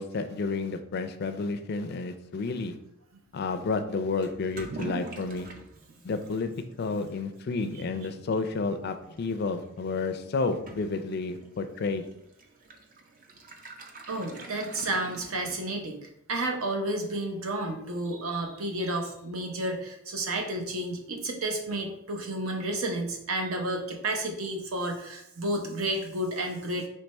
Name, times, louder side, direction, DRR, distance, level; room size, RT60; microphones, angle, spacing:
voice 1, 0.0-2.8 3.3-5.5 6.0-6.5 6.8-12.1, left 3 dB, 45° left, 8 dB, 0.4 m, -31 dB
Toilet flush / Liquid, 4.2-15.9, right 3 dB, 40° right, 0.4 m, -46 dB
voice 2, 14.1-26.9, right 1 dB, 80° right, 3 dB, 0.8 m, -31 dB
3.4 x 3.2 x 4.1 m, 0.78 s
head